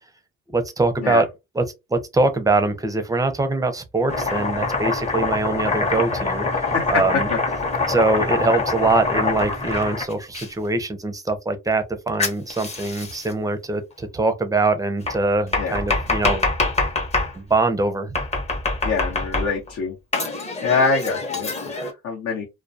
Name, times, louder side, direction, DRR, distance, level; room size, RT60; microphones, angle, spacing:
voice 1, 0.5-1.2 1.5-1.6 1.9-7.3 7.9-16.5 17.4-18.1, right 3 dB, 10° right, 0.5 m, -23 dB
Domestic sounds home sounds, 4.1-10.5 12.2-13.3 15.1-17.3 18.1-19.7 20.1-21.9, left 3 dB, 20° left, 0.8 m, -25 dB
voice 2, 18.8-19.9 20.6-22.5, left 5 dB, 70° left, 0.8 m, -24 dB
2.2 x 2.2 x 2.6 m
cardioid pair, 90°, 30 cm